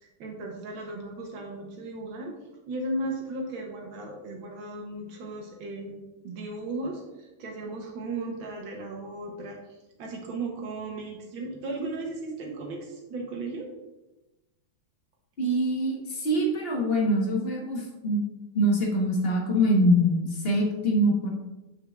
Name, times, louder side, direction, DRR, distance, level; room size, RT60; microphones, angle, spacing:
voice 1, 0.0-2.3 2.7-9.6 10.0-13.7, right 2 dB, 80° right, 0 dB, 1.7 m, -36 dB
voice 2, 15.4-18.2 18.5-21.3, equal, 35° left, 0 dB, 1.2 m, -24 dB
8.0 x 6.8 x 2.3 m, 1.0 s
omnidirectional pair, 2.2 m